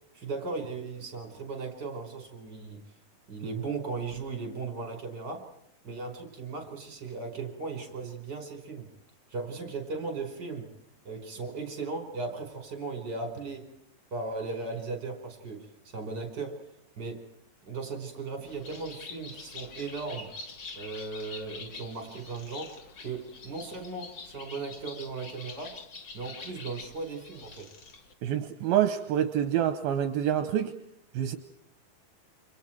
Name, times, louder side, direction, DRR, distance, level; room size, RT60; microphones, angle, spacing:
voice 1, 0.1-2.8 3.3-5.5 5.8-8.9 9.3-10.7 11.1-13.6 14.1-16.6 17.0-17.3 17.7-20.3 20.7-22.7 23.0-25.8 26.1-27.7, right 4 dB, 25° right, 4 dB, 5.4 m, -37 dB
Bird, 18.4-28.1, left 4 dB, 45° left, 1.5 m, -46 dB
voice 2, 28.2-30.7 31.1-31.4, right 10 dB, 75° right, 8 dB, 2.8 m, -27 dB
29.5 x 27.0 x 4.7 m, 0.77 s
omnidirectional pair, 4.5 m